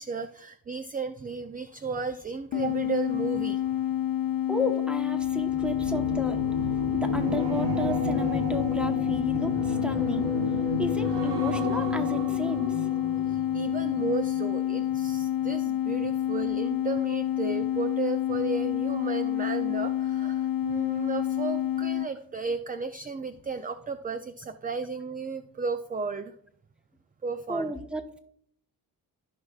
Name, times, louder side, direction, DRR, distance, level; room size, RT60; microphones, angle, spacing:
voice 1, 0.0-3.9 9.9-10.1 13.2-26.3 27.2-27.7, right 4 dB, 20° right, 10 dB, 0.4 m, -34 dB
sound 1, 2.5-22.1, left 12 dB, 55° left, 0.6 m, -28 dB
voice 2, 4.5-6.5 6.9-10.3 10.8-12.9 27.5-28.2, left 1 dB, 5° right, 6 dB, 1.1 m, -33 dB
sound 2, 5.1-14.5 14.9-15.2, equal, 80° right, 2.5 m, -33 dB
14.5 x 5.6 x 2.4 m, 0.65 s
cardioid pair, 75°, 41 cm